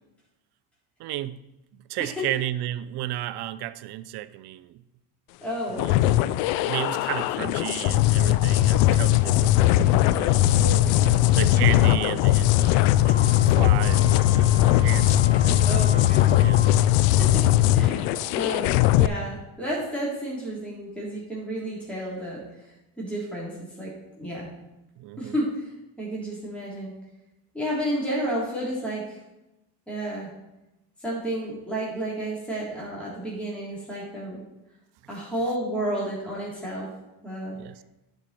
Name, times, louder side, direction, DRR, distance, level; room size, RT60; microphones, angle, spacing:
voice 1, 1.0-1.4 1.7-4.8 5.7-6.1 6.7-10.6 11.3-16.0 16.4-16.6 17.0-17.2 25.0-25.4 37.5-37.8, right 14 dB, 60° right, 0.6 m, -33 dB
voice 2, 5.4-5.9 9.6-9.9 10.6-11.2 15.6-16.4 16.8-17.4 17.7-22.4 23.0-24.5 25.2-25.7 26.0-26.9 27.5-29.2 29.9-30.3 31.0-34.4 35.1-36.9 37.2-37.6, right 1 dB, ahead, 3.7 m, -32 dB
sound 1, 5.8-19.1, left 14 dB, 80° left, 0.5 m, -20 dB
Wind instrument woodwind instrument, 13.0-16.8, equal, 30° left, 1.8 m, -40 dB
10.5 x 5.4 x 4.5 m
supercardioid pair, 75°, 46 cm